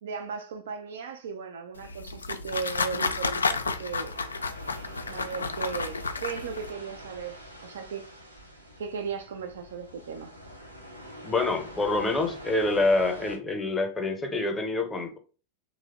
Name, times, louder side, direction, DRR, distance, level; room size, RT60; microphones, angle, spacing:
voice 1, 0.0-4.1 5.1-8.1 8.8-10.3, right 6 dB, 60° right, 0.3 m, -36 dB
sound 1, 1.8-6.7, left 4 dB, 75° left, 0.3 m, -31 dB
sound 2, 3.3-13.4, equal, 85° right, 0.7 m, -45 dB
voice 2, 11.2-15.2, left 2 dB, 15° left, 0.7 m, -26 dB
3.1 x 2.1 x 3.5 m
figure-of-eight pair, 90°, 0 cm